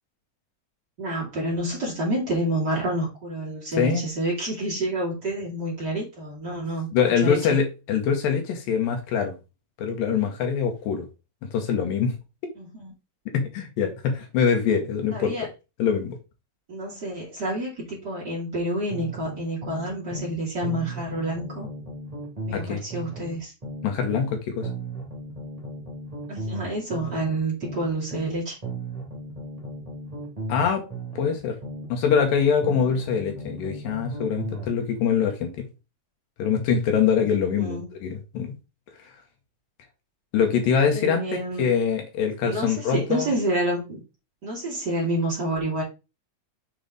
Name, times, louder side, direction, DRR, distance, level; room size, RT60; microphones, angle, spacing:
voice 1, 1.0-6.9 7.2-7.6 12.6-12.9 15.1-15.5 16.7-21.7 22.5-23.5 26.3-28.6 37.2-37.3 37.6-37.9 40.9-41.6 42.4-44.0 44.4-45.8, right 1 dB, 30° right, 2.7 m, -28 dB
voice 2, 6.9-9.3 9.8-11.1 11.5-12.2 13.3-15.5 15.8-16.2 22.5-22.8 23.8-24.7 30.5-30.8 31.2-31.6 31.9-35.7 36.4-38.5 40.3-43.3, left 7 dB, 75° left, 2.6 m, -24 dB
sound 1, 18.9-20.3 20.6-24.3 24.6-28.3 28.6-32.3 32.6-34.7, right 2 dB, 90° right, 0.3 m, -35 dB
7.1 x 4.0 x 3.8 m
omnidirectional pair, 4.3 m